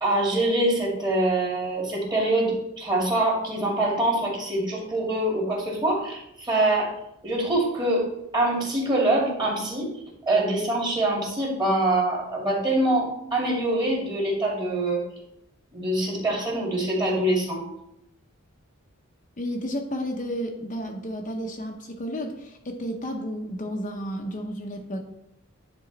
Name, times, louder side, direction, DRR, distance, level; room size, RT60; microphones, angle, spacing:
voice 1, 0.0-6.9 7.2-8.1 8.3-9.9 10.3-15.0 15.7-17.6, right 1 dB, 20° right, -3 dB, 2.3 m, -24 dB
voice 2, 19.4-25.0, equal, 35° left, 2 dB, 0.8 m, -32 dB
10.0 x 3.8 x 4.0 m, 0.81 s
head